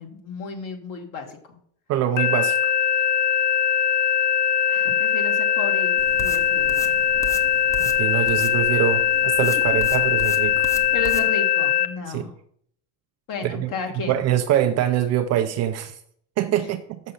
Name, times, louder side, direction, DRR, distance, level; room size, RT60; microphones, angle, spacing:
voice 1, 0.0-1.4 4.7-7.0 10.9-12.3 13.3-14.2, left 4 dB, 40° left, 4 dB, 1.8 m, -33 dB
voice 2, 1.9-2.7 7.8-10.7 12.1-12.2 13.4-13.7 14.1-16.0 16.4-17.0, right 11 dB, 35° right, 7 dB, 0.5 m, -24 dB
sound 1, 2.2-11.9, left 8 dB, 25° left, 0.4 m, -21 dB
sound 2, 6.0-11.3, right 1 dB, 5° left, 0.7 m, -38 dB
7.2 x 6.4 x 5.5 m, 0.67 s
supercardioid pair, 135°, 46 cm